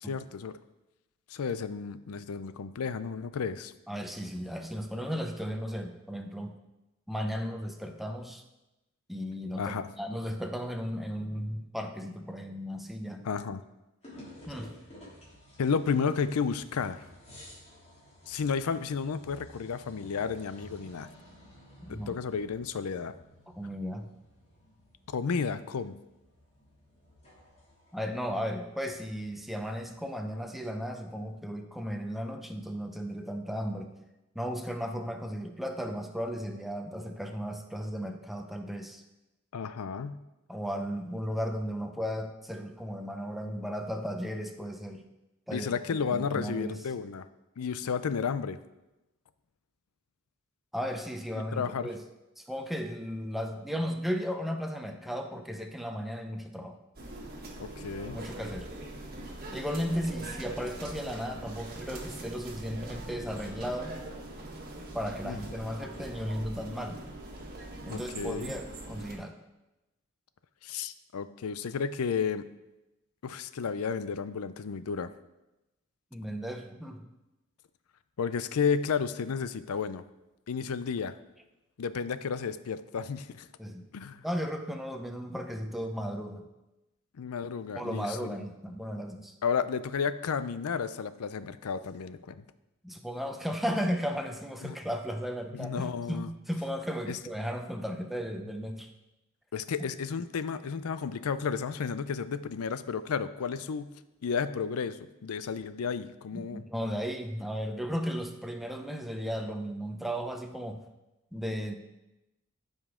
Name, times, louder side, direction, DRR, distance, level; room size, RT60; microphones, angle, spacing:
voice 1, 0.0-0.5 1.3-3.7 9.6-9.9 13.2-13.6 15.6-17.1 18.3-21.1 21.9-23.1 25.1-25.9 39.5-40.2 45.5-47.3 47.6-48.6 51.4-51.9 57.6-58.2 65.2-65.4 67.9-68.5 70.6-72.4 73.2-75.1 78.2-80.0 80.5-81.1 81.8-83.5 83.9-84.2 87.2-88.4 89.4-92.4 94.6-94.8 95.5-96.3 97.1-97.2 99.5-103.9 104.2-106.6, left 6 dB, 85° left, 13 dB, 0.5 m, -32 dB
voice 2, 3.9-6.6 7.1-8.4 9.1-13.3 14.5-14.8 21.8-22.2 23.6-24.1 27.9-33.9 34.3-39.0 40.5-45.0 45.5-46.8 50.7-52.0 52.4-56.8 58.1-58.7 59.5-64.0 64.9-67.0 67.8-69.4 76.1-77.1 83.6-83.9 84.2-86.4 87.7-89.3 92.8-98.9 106.3-110.8 111.3-111.8, equal, ahead, 4 dB, 0.7 m, -35 dB
sound 1, 14.0-30.4, equal, 30° left, 3.0 m, -54 dB
sound 2, 56.9-69.1, right 1 dB, 45° right, 1.5 m, -42 dB
14.0 x 5.3 x 3.7 m, 0.98 s
head